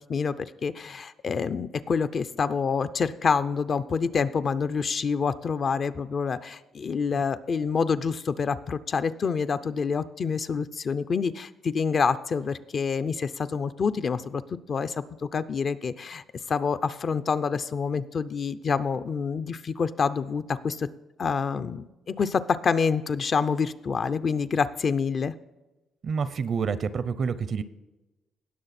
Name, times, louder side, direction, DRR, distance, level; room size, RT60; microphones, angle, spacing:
voice 1, 0.0-14.4 14.7-15.0 15.2-20.9 21.2-25.3, left 5 dB, 50° left, 12 dB, 0.6 m, -27 dB
voice 2, 26.0-27.6, right 6 dB, 50° right, 15 dB, 0.6 m, -28 dB
18.0 x 6.5 x 4.2 m, 1.0 s
cardioid pair, 90°, 0 cm